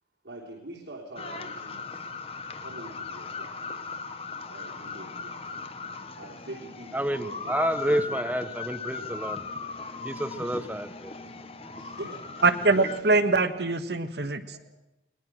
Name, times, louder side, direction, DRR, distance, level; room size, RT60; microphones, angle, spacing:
voice 1, 0.2-2.0 2.6-3.8 4.5-5.5 6.1-8.2 11.8-13.2 14.5-14.6, right 1 dB, 80° right, -3 dB, 3.6 m, -44 dB
sound 1, 1.2-13.0, left 4 dB, 30° left, 1.1 m, -38 dB
voice 2, 6.9-9.5 10.0-11.1, right 1 dB, 10° right, 12 dB, 0.9 m, -29 dB
voice 3, 12.4-14.6, right 3 dB, 65° right, 9 dB, 1.4 m, -23 dB
21.5 x 21.0 x 6.2 m, 0.95 s
head